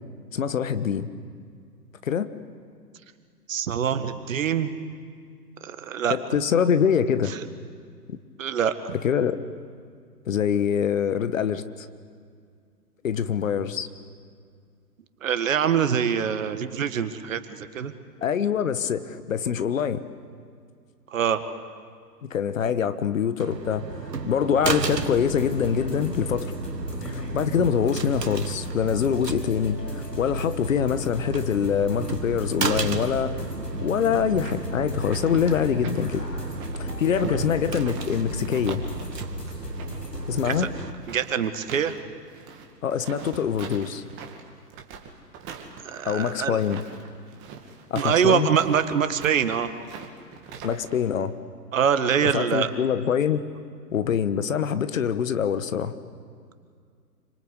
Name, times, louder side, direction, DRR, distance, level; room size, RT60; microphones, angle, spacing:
voice 1, 0.3-1.1 2.0-2.3 6.1-7.3 8.1-8.2 9.0-9.4 10.2-11.9 13.0-13.9 18.2-20.0 22.2-26.5 27.0-33.4 33.8-36.2 36.8-38.8 40.3-40.7 42.8-44.0 46.0-46.8 47.9-48.5 50.6-51.3 52.2-53.4 53.9-55.9, left 8 dB, 55° left, 12 dB, 1.4 m, -24 dB
voice 2, 3.5-4.7 5.6-6.2 8.4-8.9 15.2-17.9 21.1-21.4 27.6-27.7 37.2-37.4 40.4-40.7 41.1-42.0 45.8-46.6 47.9-49.7 51.7-52.7, right 8 dB, 50° right, 10 dB, 1.8 m, -24 dB
sound 1, 23.4-40.9, right 5 dB, 80° right, 1.7 m, -34 dB
sound 2, 24.6-40.6, left 1 dB, 80° left, 7.9 m, -36 dB
sound 3, 34.4-38.2 38.4-42.0 42.3-51.0, right 6 dB, 25° right, 2.4 m, -43 dB
27.0 x 25.0 x 8.3 m, 2.2 s
figure-of-eight pair, 125°, 49 cm